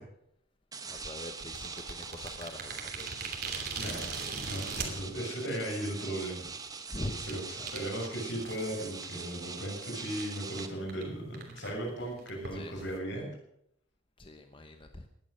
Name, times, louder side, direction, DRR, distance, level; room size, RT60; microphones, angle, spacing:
sound 1, 0.7-10.7, right 5 dB, 20° right, 1.2 m, -43 dB
voice 1, 0.9-3.3 4.6-5.1 6.9-7.7 12.5-12.8 14.2-15.1, left 1 dB, 25° left, 6 dB, 1.0 m, -43 dB
sound 2, 1.4-4.9 5.7-5.8 6.3-6.5 7.3-7.4 7.7-7.8 8.4-8.9 9.2-9.3 9.6-9.7 10.2-10.3 10.6-10.7 10.9-11.0 11.3-13.0, right 5 dB, 55° right, 3.0 m, -39 dB
voice 2, 3.8-4.1 4.4-6.5 7.3-13.3, right 1 dB, 70° left, 0 dB, 6.4 m, -37 dB
19.0 x 11.0 x 6.6 m, 0.76 s
head